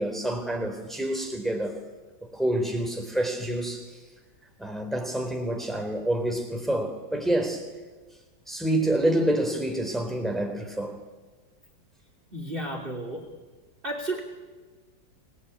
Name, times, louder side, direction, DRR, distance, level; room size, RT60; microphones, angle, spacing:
voice 1, 0.0-1.8 2.3-4.0 4.6-7.7 8.5-11.0, right 1 dB, ahead, 3.8 m, -27 dB
voice 2, 12.3-13.3 13.8-14.2, right 1 dB, 30° right, 3.1 m, -32 dB
27.0 x 19.5 x 9.8 m
omnidirectional pair, 2.0 m